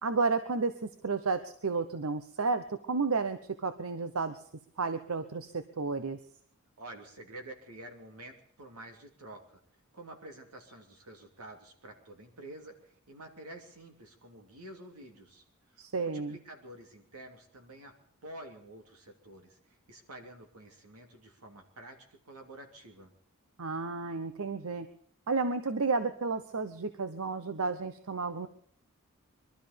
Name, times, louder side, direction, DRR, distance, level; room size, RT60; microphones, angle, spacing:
voice 1, 0.0-4.4 4.8-6.2 15.8-16.4 23.6-24.9 25.3-28.5, right 4 dB, 70° right, 11 dB, 0.8 m, -32 dB
voice 2, 6.8-9.6 9.9-15.4 15.7-17.9 18.2-23.1, right 1 dB, 90° right, 4 dB, 2.8 m, -49 dB
22.0 x 12.5 x 5.2 m, 0.62 s
head